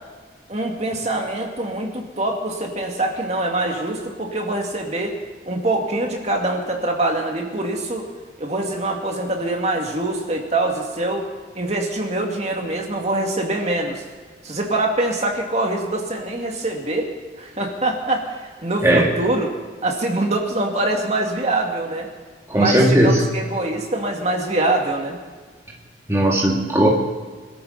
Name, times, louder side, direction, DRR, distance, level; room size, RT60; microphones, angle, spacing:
voice 1, 0.5-5.2 5.5-8.1 8.4-11.3 11.5-14.0 14.4-17.1 17.4-19.5 19.8-22.1 22.5-25.2, right 2 dB, 35° right, 1 dB, 2.4 m, -24 dB
voice 2, 22.5-23.2 26.1-26.9, right 1 dB, 15° right, -3 dB, 1.9 m, -16 dB
26.0 x 13.5 x 4.2 m, 1.5 s
head